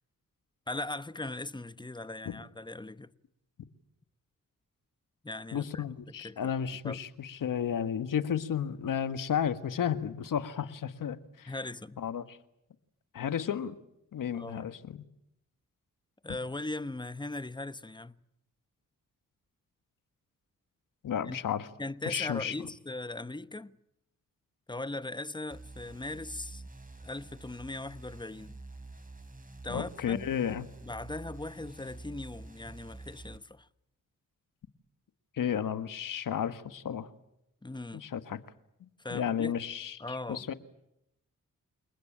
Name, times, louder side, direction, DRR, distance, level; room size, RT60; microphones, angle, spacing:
voice 1, 0.7-3.1 5.2-5.9 6.2-6.5 6.8-7.0 11.5-12.1 14.3-14.7 16.2-18.1 21.2-21.4 21.8-23.8 24.7-26.6 27.0-28.6 29.6-30.4 30.8-33.7 37.6-38.1 39.0-39.6 40.0-40.5, left 2 dB, 15° left, 1.0 m, -39 dB
voice 2, 5.5-11.5 12.0-12.4 13.1-13.7 14.1-15.0 21.0-21.7 22.0-22.5 29.7-30.6 35.4-37.1 37.9-38.4 38.8-40.5, left 8 dB, 75° left, 1.6 m, -33 dB
sound 1, 25.5-33.4, right 2 dB, 25° right, 3.5 m, -48 dB
29.0 x 20.0 x 9.0 m
cardioid pair, 65°, 33 cm